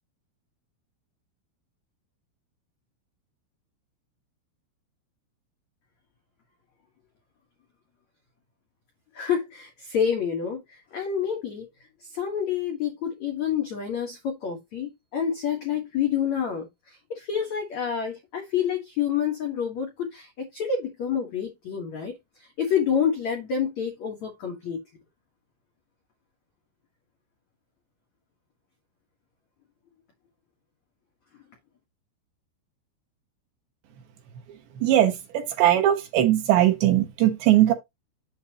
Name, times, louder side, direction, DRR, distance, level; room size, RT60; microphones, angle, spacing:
voice 1, 9.1-11.7 12.1-22.1 22.6-24.8, left 8 dB, 80° left, 1.6 m, -28 dB
voice 2, 34.8-37.7, right 12 dB, 70° right, 3.0 m, -20 dB
8.4 x 6.9 x 2.9 m
omnidirectional pair, 5.9 m